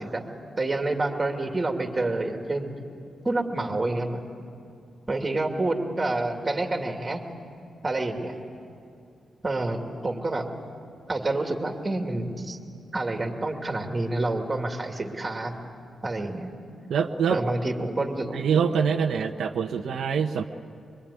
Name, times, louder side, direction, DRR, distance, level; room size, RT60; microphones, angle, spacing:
voice 1, 0.0-2.7 3.2-4.2 5.1-7.2 7.8-8.4 9.4-10.4 11.1-12.6 12.9-15.5 16.0-16.5 17.3-18.4, right 2 dB, 20° right, 3 dB, 2.5 m, -28 dB
voice 2, 16.9-17.4 18.3-20.4, right 6 dB, 75° right, 3 dB, 1.0 m, -25 dB
24.5 x 23.5 x 9.9 m, 2.5 s
wide cardioid pair, 160°, 0 cm